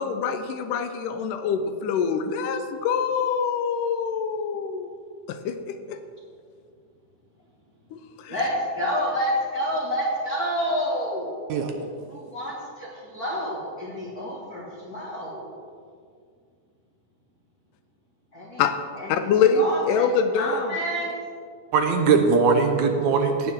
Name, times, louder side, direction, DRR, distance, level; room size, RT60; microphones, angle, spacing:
voice 1, 0.0-4.9 5.3-6.0 7.9-8.4 18.6-18.8 19.1-20.8, left 6 dB, 80° left, 8 dB, 2.3 m, -25 dB
voice 2, 8.3-11.3 12.1-15.5 18.3-18.6 19.0-21.1, equal, 35° left, -6 dB, 1.8 m, -29 dB
voice 3, 21.7-23.5, right 5 dB, 70° right, 5 dB, 2.0 m, -20 dB
17.0 x 9.1 x 3.7 m, 2.2 s
omnidirectional pair, 3.8 m